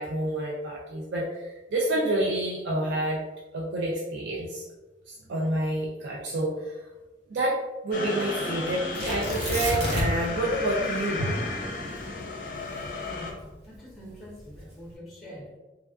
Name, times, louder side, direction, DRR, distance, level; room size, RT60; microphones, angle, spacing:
voice 1, 0.0-3.2 3.5-4.6 5.3-6.7 7.3-7.6 7.8-11.2, right 1 dB, 75° right, -4 dB, 0.4 m, -28 dB
sound 1, 5.2-6.5 11.2-13.1, equal, 55° right, 1.2 m, -38 dB
sound 2, 7.9-13.3, left 3 dB, 50° left, 0.5 m, -34 dB
Tearing, 8.9-10.3 10.6-10.7 11.3-13.6 14.3-14.8, equal, 40° right, 0.9 m, -30 dB
voice 2, 13.0-15.6, equal, ahead, -5 dB, 0.7 m, -45 dB
3.4 x 2.3 x 2.3 m, 1.1 s
head